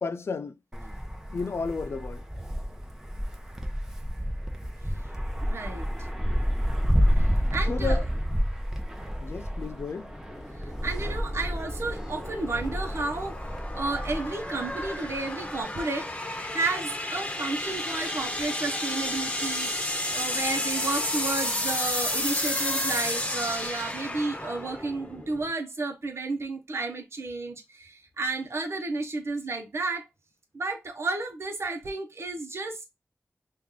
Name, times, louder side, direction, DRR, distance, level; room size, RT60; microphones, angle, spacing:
voice 1, 0.0-0.6 1.3-2.2 7.7-8.0 9.2-10.1, left 4 dB, 70° left, 0.4 m, -32 dB
Wind, 0.7-15.6, equal, 10° right, 0.8 m, -30 dB
voice 2, 5.4-6.1 7.2-8.0 10.6-16.1 16.5-19.7 20.1-30.1 30.5-32.9, right 3 dB, 75° right, 0.9 m, -32 dB
sound 1, 10.1-25.5, left 1 dB, 30° left, 0.9 m, -32 dB
3.1 x 2.5 x 3.7 m
cardioid pair, 50°, 5 cm